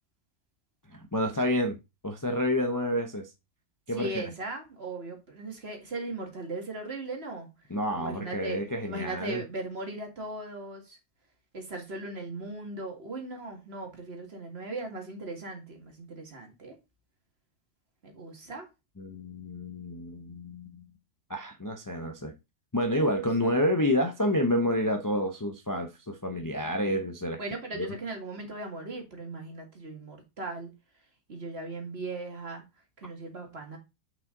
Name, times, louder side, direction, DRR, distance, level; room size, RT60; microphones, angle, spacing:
voice 1, 0.9-1.8 2.0-3.3 3.9-4.1 7.7-9.4 19.0-20.8 21.3-22.3 22.7-27.4 27.7-27.9, left 1 dB, 20° left, 0.7 m, -29 dB
voice 2, 3.9-7.5 8.0-8.6 8.8-11.0 11.5-16.8 18.0-18.7 22.9-23.2 27.4-30.7 31.3-32.6 33.0-33.8, right 2 dB, 45° right, 2.2 m, -38 dB
6.1 x 5.6 x 3.8 m
omnidirectional pair, 1.4 m